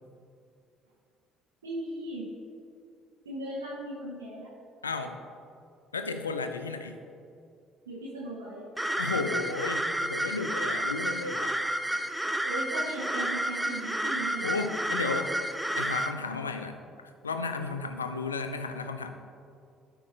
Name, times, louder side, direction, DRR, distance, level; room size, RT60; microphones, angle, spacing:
voice 1, 1.6-2.3 3.2-4.5 7.9-8.7 12.4-14.5, right 1 dB, 85° right, -6 dB, 0.9 m, -37 dB
voice 2, 4.8-5.2 5.9-7.0 8.9-11.6 14.4-15.4 15.8-16.8 17.2-19.1, left 4 dB, 90° left, 7 dB, 0.4 m, -33 dB
sound 1, 8.8-16.1, right 1 dB, 5° right, 0.5 m, -31 dB
13.0 x 4.5 x 3.2 m, 2.4 s
hypercardioid pair, 55°, 0 cm